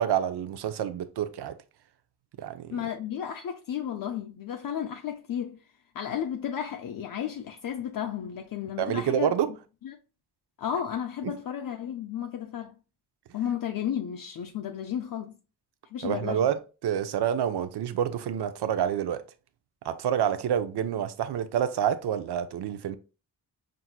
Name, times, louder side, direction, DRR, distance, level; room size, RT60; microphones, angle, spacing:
voice 1, 0.0-1.6 2.4-2.8 8.8-9.5 16.0-19.2 19.8-23.0, right 9 dB, 90° right, 0.5 m, -28 dB
voice 2, 2.7-5.6 5.9-9.3 9.8-10.0 10.6-12.7 13.3-15.4 15.9-16.5, left 9 dB, 60° left, 0.5 m, -33 dB
5.7 x 2.6 x 2.3 m
wide cardioid pair, 145°, 39 cm